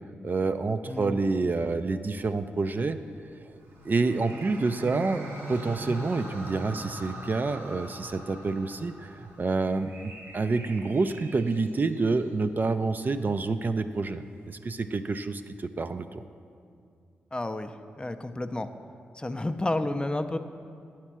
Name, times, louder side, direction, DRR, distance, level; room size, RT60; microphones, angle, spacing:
voice 1, 0.2-3.0 3.4-3.5 3.8-16.2, right 3 dB, 40° right, 9 dB, 0.4 m, -28 dB
voice 2, 0.9-1.2 17.3-18.7 19.1-20.4, left 2 dB, 20° left, 9 dB, 0.5 m, -31 dB
sound 1, 1.4-15.1, right 2 dB, 60° right, 1.0 m, -54 dB
sound 2, 3.6-9.9, equal, 85° right, 1.5 m, -41 dB
9.0 x 4.3 x 6.0 m, 2.4 s
supercardioid pair, 40°, 5 cm